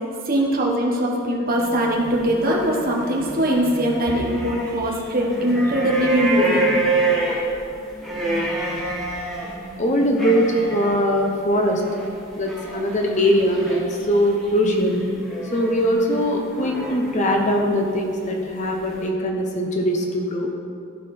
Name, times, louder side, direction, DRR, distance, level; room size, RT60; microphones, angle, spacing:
voice 1, 0.2-6.7, equal, 40° right, -1 dB, 1.3 m, -21 dB
sound 1, 1.5-4.7 5.0-17.7 18.2-19.1, right 2 dB, ahead, 1.4 m, -28 dB
voice 2, 9.8-11.8 12.4-13.8 14.1-14.9 15.5-20.5, equal, 35° left, 2 dB, 0.9 m, -21 dB
14.0 x 5.9 x 4.3 m, 2.5 s
head